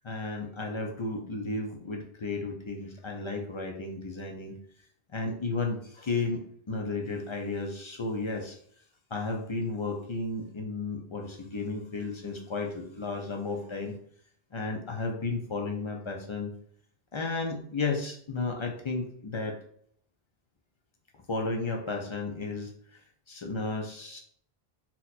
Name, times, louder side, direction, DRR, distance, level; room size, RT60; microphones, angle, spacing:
voice 1, 0.0-4.5 5.1-8.6 9.1-13.9 14.5-16.5 17.1-19.6 21.3-23.0 23.3-24.2, left 3 dB, 50° left, 1 dB, 0.3 m, -33 dB
2.8 x 2.2 x 4.0 m, 0.62 s
omnidirectional pair, 1.0 m